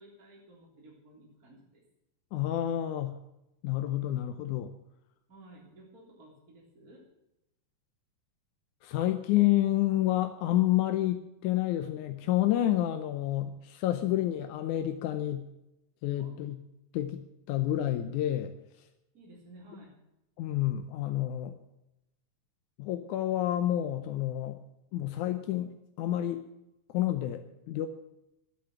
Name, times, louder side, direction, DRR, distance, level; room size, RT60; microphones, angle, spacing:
voice 1, 0.0-1.8 5.3-7.1 16.2-16.4 19.1-20.0, right 1 dB, 30° right, -3 dB, 3.7 m, -54 dB
voice 2, 2.3-3.2 3.6-4.7 8.8-15.4 16.0-16.6 16.9-18.6 20.4-21.5 22.8-24.6 24.9-25.7 26.0-26.5 26.9-27.9, left 13 dB, 85° left, 8 dB, 2.2 m, -29 dB
12.5 x 10.5 x 7.2 m, 0.88 s
omnidirectional pair, 3.5 m